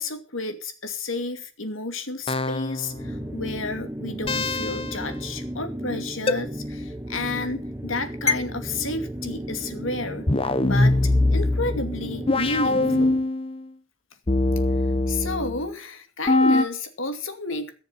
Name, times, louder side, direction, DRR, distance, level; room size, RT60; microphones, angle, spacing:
voice 1, 0.0-10.3 10.6-13.2 15.1-17.7, left 2 dB, 75° left, 7 dB, 2.5 m, -31 dB
sound 1, 2.3-3.0 4.3-5.0 6.3-6.4 8.3-8.4 10.3-13.6 14.3-15.7 16.3-16.6, left 2 dB, 30° left, 0.9 m, -22 dB
sound 2, 2.9-13.3, equal, 10° right, 0.8 m, -34 dB
18.0 x 7.1 x 7.1 m, 0.39 s
head